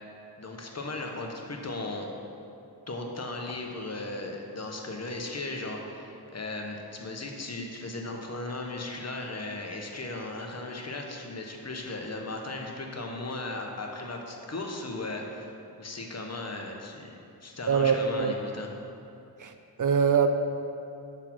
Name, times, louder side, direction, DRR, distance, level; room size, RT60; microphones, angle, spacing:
voice 1, 0.4-2.1 2.9-15.5 15.8-18.7, left 2 dB, 40° left, 1 dB, 1.1 m, -36 dB
voice 2, 17.7-18.3 19.4-20.3, right 6 dB, 50° right, 7 dB, 0.5 m, -24 dB
6.6 x 5.9 x 6.1 m, 2.6 s
wide cardioid pair, 80°, 39 cm